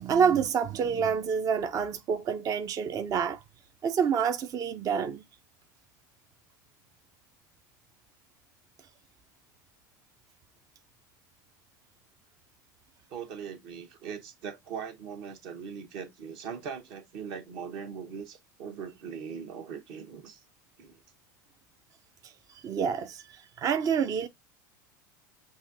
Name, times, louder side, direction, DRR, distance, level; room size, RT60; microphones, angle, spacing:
voice 1, 0.0-3.4 3.8-5.2 22.2-24.3, right 7 dB, 35° right, 0.5 m, -28 dB
voice 2, 13.1-20.4 20.8-21.0, right 7 dB, 55° right, 1.0 m, -40 dB
6.2 x 2.7 x 2.5 m
hypercardioid pair, 85°, 10 cm